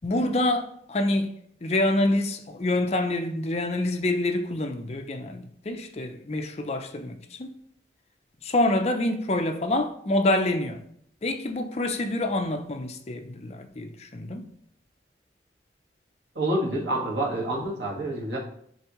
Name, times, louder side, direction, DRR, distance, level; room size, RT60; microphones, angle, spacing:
voice 1, 0.0-1.3 1.6-7.5 8.4-10.8 11.2-14.5, left 1 dB, 35° left, 0.5 m, -26 dB
voice 2, 16.4-18.4, right 1 dB, 80° right, 1.7 m, -27 dB
10.0 x 3.5 x 3.0 m
head